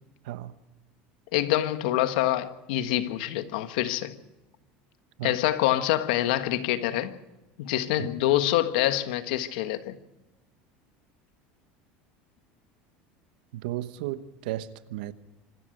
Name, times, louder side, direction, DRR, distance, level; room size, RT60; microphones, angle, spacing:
voice 1, 1.3-4.1 5.2-7.1 7.6-10.0, left 13 dB, 85° left, 1.4 m, -26 dB
voice 2, 13.5-15.1, right 14 dB, 85° right, 1.1 m, -34 dB
26.0 x 13.0 x 7.9 m
supercardioid pair, 130°, 4 cm